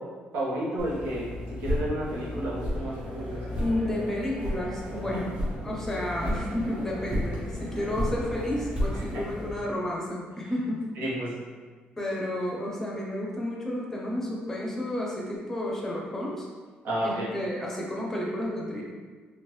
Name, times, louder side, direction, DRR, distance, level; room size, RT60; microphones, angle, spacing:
voice 1, 0.3-1.3 1.6-3.4 5.1-5.2 9.1-9.2 11.0-11.3 16.8-17.2, right 1 dB, 75° right, -6 dB, 1.1 m, -31 dB
sound 1, 0.8-9.5, left 1 dB, 30° right, 0.9 m, -33 dB
voice 2, 3.6-5.3 5.6-10.9 12.0-16.5 17.0-18.8, left 1 dB, 10° left, -3 dB, 0.6 m, -31 dB
3.6 x 2.4 x 3.1 m, 1.5 s
cardioid pair, 170°, 3 cm